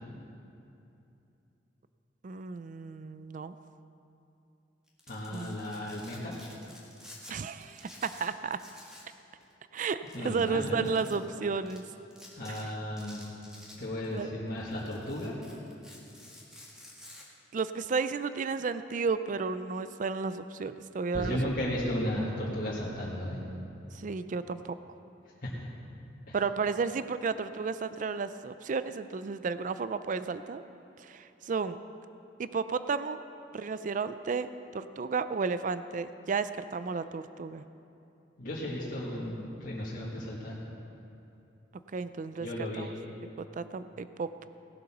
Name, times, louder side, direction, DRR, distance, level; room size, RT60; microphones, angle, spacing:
voice 1, 2.2-3.5 5.3-5.6 7.3-8.6 9.7-10.0 10.2-11.8 12.5-12.6 14.1-14.3 17.5-21.4 23.9-24.8 26.3-30.6 31.0-31.8 32.4-33.2 33.5-34.5 34.7-37.6 41.9-42.5 42.8-42.9 43.6-44.5, right 5 dB, 45° right, 12 dB, 0.4 m, -32 dB
Domestic sounds home sounds, 4.9-7.3 7.6-9.1 9.4-9.5 10.1-11.1 11.7-11.8 12.1-12.6 13.0-14.2 14.6-17.2, left 1 dB, 5° right, 1.9 m, -51 dB
voice 2, 5.1-6.4 10.1-10.9 12.4-13.2 13.8-15.4 21.1-23.4 25.4-25.7 26.3-26.4 38.4-40.5 42.4-42.9, left 1 dB, 50° left, -7 dB, 1.8 m, -34 dB
17.5 x 8.0 x 6.0 m, 2.8 s
head